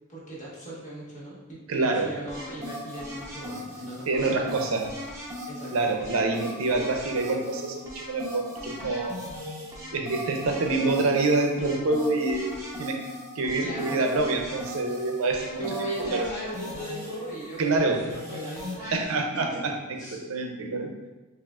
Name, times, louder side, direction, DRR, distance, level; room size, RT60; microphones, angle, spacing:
voice 1, 0.1-4.7 5.4-5.9 13.4-14.3 15.6-19.1 19.3-19.6 19.9-20.2, right 1 dB, 35° left, -7 dB, 1.3 m, -38 dB
voice 2, 1.7-2.1 4.1-4.9 5.7-9.3 9.9-13.0 13.4-15.6 16.0-16.3 17.6-18.0 18.9-19.7 20.3-20.9, right 3 dB, 70° right, 3 dB, 0.5 m, -26 dB
sound 1, 2.3-19.0, left 1 dB, 15° right, 0.8 m, -39 dB
5.7 x 2.4 x 2.4 m, 1.1 s
head